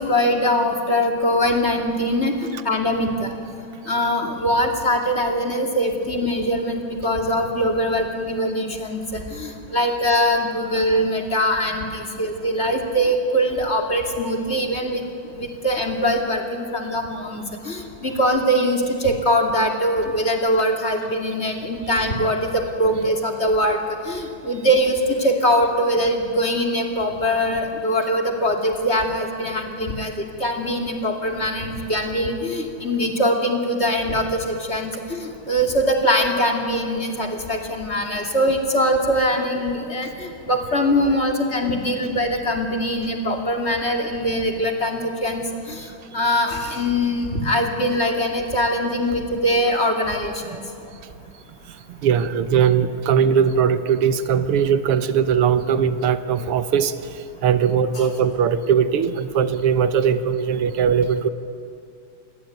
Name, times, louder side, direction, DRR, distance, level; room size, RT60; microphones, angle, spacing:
voice 1, 0.0-2.3 2.6-3.3 3.9-15.0 15.4-23.8 24.0-30.1 30.4-45.8 46.1-50.6 58.0-58.1, equal, 30° left, 3 dB, 2.8 m, -22 dB
voice 2, 51.9-61.3, right 7 dB, 90° right, 12 dB, 2.0 m, -20 dB
28.0 x 21.0 x 9.4 m, 2.5 s
omnidirectional pair, 2.4 m